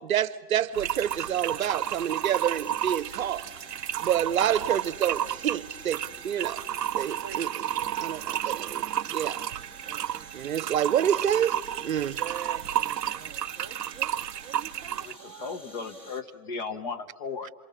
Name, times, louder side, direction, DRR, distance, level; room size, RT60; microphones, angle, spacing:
voice 1, 0.0-3.4 4.0-6.6 6.9-7.7 8.0-8.8 9.1-9.4 10.3-11.5 11.8-12.2, right 10 dB, 60° right, 0.9 m, -28 dB
sound 1, 0.7-15.2, right 11 dB, 85° right, 0.7 m, -32 dB
sound 2, 0.9-16.2, right 2 dB, 10° left, 1.5 m, -50 dB
voice 2, 7.0-8.7 9.0-9.3 9.8-10.3 11.9-15.5, right 10 dB, 20° right, 0.7 m, -46 dB
voice 3, 15.0-17.5, left 4 dB, 25° left, 0.8 m, -36 dB
27.5 x 24.0 x 6.9 m
hypercardioid pair, 155°, 47 cm